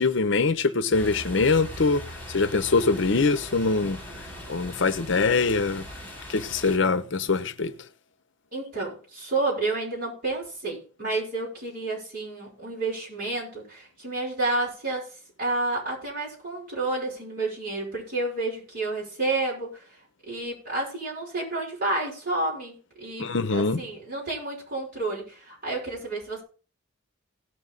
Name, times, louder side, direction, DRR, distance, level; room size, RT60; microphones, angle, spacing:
voice 1, 0.0-2.0 2.3-4.0 4.5-5.9 6.3-7.7 23.2-23.8, left 4 dB, 60° left, 0.7 m, -23 dB
sound 1, 0.9-6.8, equal, 10° left, 2.8 m, -40 dB
voice 2, 8.5-15.1 15.4-19.8 20.3-26.4, right 2 dB, 45° right, 5.7 m, -30 dB
17.5 x 6.2 x 3.9 m
head